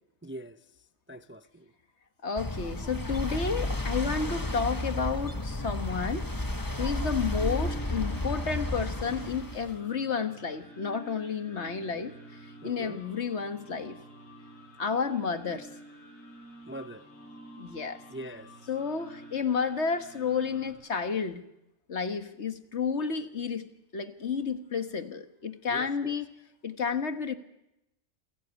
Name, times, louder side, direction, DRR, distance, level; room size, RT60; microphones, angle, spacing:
voice 1, 0.2-0.6 1.1-1.7 12.6-13.0 16.7-17.1 18.1-18.5 25.7-26.1, right 1 dB, 10° right, 0.6 m, -42 dB
voice 2, 2.2-6.3 6.8-12.1 12.6-14.0 14.8-15.7 17.6-18.0 18.7-21.4 21.9-26.3 26.6-27.4, left 5 dB, 60° left, 1.7 m, -31 dB
sound 1, 2.4-9.8, left 1 dB, 15° left, 1.5 m, -32 dB
sound 2, 6.5-20.7, right 1 dB, 90° left, 6.7 m, -49 dB
27.5 x 17.0 x 8.3 m
omnidirectional pair, 1.3 m